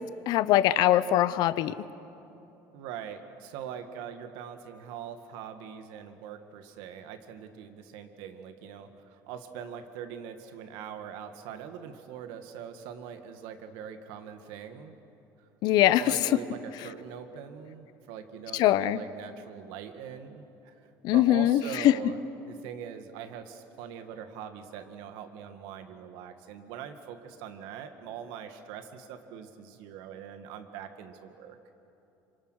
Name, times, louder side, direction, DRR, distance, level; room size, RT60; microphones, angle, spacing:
voice 1, 0.3-1.9 15.6-16.3 18.5-19.0 21.0-22.0, left 13 dB, 60° left, 16 dB, 0.7 m, -22 dB
voice 2, 2.7-15.0 16.0-31.6, right 8 dB, 75° right, 7 dB, 1.9 m, -42 dB
27.0 x 25.0 x 6.4 m, 2.9 s
cardioid pair, 130°, 8 cm